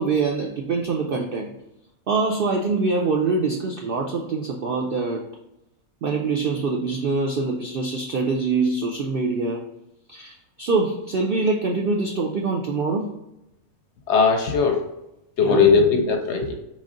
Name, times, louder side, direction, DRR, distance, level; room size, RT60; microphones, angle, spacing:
voice 1, 0.0-1.5 2.1-5.2 6.0-9.6 10.1-13.1 15.4-15.8, right 4 dB, 85° right, 1 dB, 0.4 m, -24 dB
voice 2, 14.1-14.9 15.4-16.5, left 5 dB, 65° left, 4 dB, 0.7 m, -18 dB
4.0 x 3.1 x 3.7 m, 0.89 s
omnidirectional pair, 1.5 m